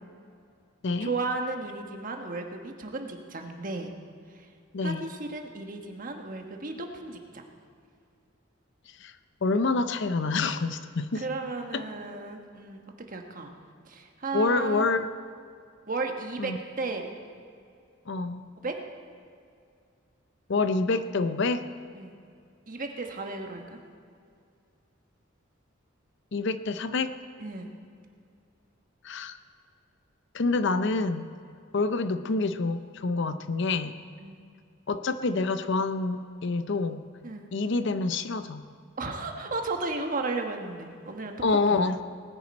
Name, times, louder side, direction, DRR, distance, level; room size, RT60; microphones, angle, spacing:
voice 1, 1.0-3.9 4.8-7.4 11.1-12.8 13.1-13.5 13.8-14.9 15.9-17.1 18.6-18.7 21.9-22.1 22.7-23.8 27.4-27.7 34.2-34.4 37.2-37.5 39.0-41.3, right 3 dB, 45° right, 3 dB, 1.3 m, -34 dB
voice 2, 9.4-11.3 11.7-11.8 14.3-15.1 16.4-16.6 18.1-18.4 20.5-21.7 26.3-27.1 29.0-29.4 30.3-31.3 31.7-33.9 34.9-37.1 37.5-38.7 41.4-42.0, left 3 dB, 65° left, 11 dB, 0.6 m, -27 dB
19.5 x 10.0 x 4.3 m, 2.3 s
head